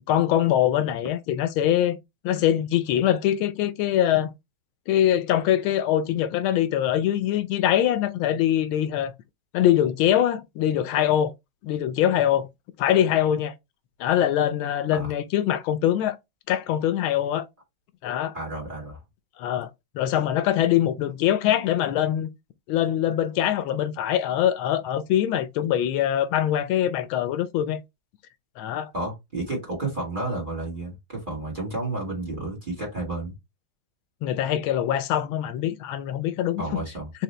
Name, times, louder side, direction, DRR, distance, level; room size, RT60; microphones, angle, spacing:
voice 1, 0.1-2.0 2.2-4.3 4.9-9.1 9.5-11.3 11.6-12.5 12.8-13.5 14.0-16.2 16.5-17.5 18.0-18.3 19.4-19.7 19.9-22.3 22.7-27.8 28.6-28.9 34.2-36.8, left 11 dB, 80° left, 1.4 m, -23 dB
voice 2, 18.3-19.0 28.9-33.3 36.6-37.1, right 2 dB, 25° right, 1.7 m, -31 dB
4.1 x 2.8 x 3.1 m
omnidirectional pair, 2.2 m